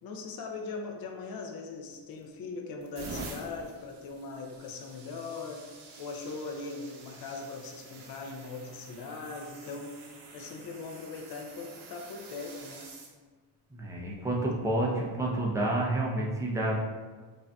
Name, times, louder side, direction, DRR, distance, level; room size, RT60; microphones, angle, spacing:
voice 1, 0.0-5.6 6.0-12.9, left 4 dB, 50° left, 2 dB, 0.6 m, -40 dB
sound 1, 1.9-2.3 2.8-13.1 14.0-14.2 15.8-15.9, right 3 dB, 85° right, 0.9 m, -48 dB
voice 2, 13.7-16.8, right 1 dB, 5° right, -4 dB, 0.5 m, -29 dB
5.1 x 2.7 x 2.2 m, 1.4 s
cardioid pair, 135°, 48 cm